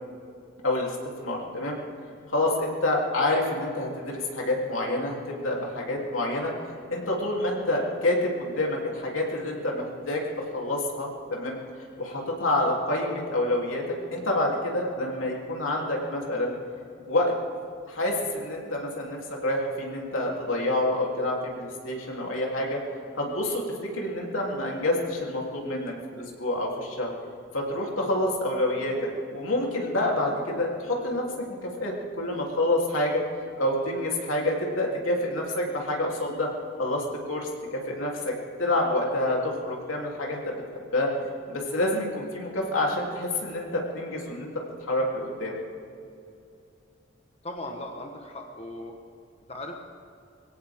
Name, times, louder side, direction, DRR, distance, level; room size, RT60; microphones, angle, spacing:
voice 1, 0.6-0.9 1.2-1.8 2.3-6.5 6.9-10.2 10.5-11.6 12.0-16.5 17.1-17.3 17.9-22.8 23.1-27.1 27.5-29.0 29.3-31.2 31.6-33.2 33.6-36.5 36.8-37.5 37.9-38.3 38.6-40.6 40.9-44.5 44.9-45.5, left 1 dB, 90° left, -2 dB, 3.3 m, -27 dB
voice 2, 47.4-49.0 49.5-49.7, left 1 dB, 30° left, 2 dB, 1.3 m, -37 dB
22.5 x 17.0 x 3.7 m, 2.5 s
head